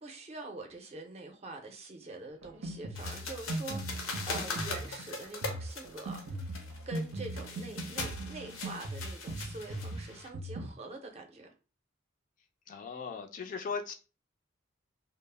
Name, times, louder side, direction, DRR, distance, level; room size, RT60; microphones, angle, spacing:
voice 1, 0.0-6.6 6.9-11.5, right 2 dB, 35° right, 0.5 m, -45 dB
Drum kit, 2.4-10.7, right 2 dB, 90° right, 0.6 m, -40 dB
sound 1, 2.9-10.3, left 3 dB, 85° left, 0.6 m, -41 dB
voice 2, 12.7-13.9, left 5 dB, 40° left, 0.3 m, -38 dB
2.0 x 2.0 x 3.2 m
head